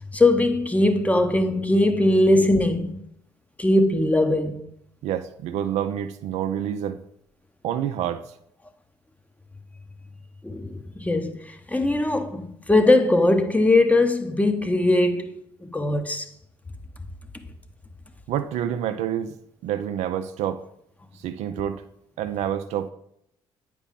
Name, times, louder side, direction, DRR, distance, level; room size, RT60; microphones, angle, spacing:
voice 1, 0.1-3.0 3.6-4.6 10.4-15.4 15.6-16.3, left 2 dB, 10° left, 1.0 m, -20 dB
voice 2, 5.0-7.0 7.6-8.2 18.3-19.4 19.6-20.6 21.2-21.8 22.2-22.9, right 10 dB, 60° right, 0.5 m, -27 dB
9.0 x 5.0 x 3.6 m
hypercardioid pair, 50°, 13 cm